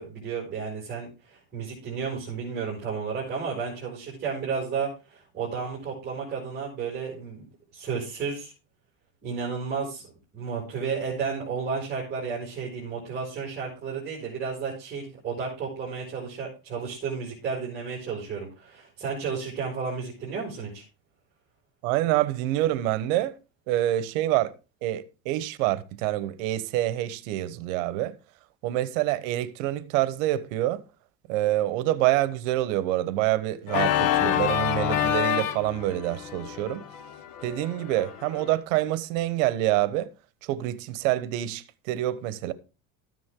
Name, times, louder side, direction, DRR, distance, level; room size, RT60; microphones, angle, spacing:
voice 1, 0.0-7.5 7.7-8.5 9.2-10.1 10.3-20.8, right 5 dB, 25° right, 5.7 m, -32 dB
voice 2, 21.8-23.4 23.7-24.5 24.8-28.1 28.6-30.8 31.3-36.8 37.4-40.1 40.4-42.5, right 15 dB, 75° right, 1.2 m, -26 dB
Organ, 33.7-38.5, left 10 dB, 50° left, 1.6 m, -27 dB
14.0 x 9.6 x 3.8 m
cardioid pair, 165°, 40 cm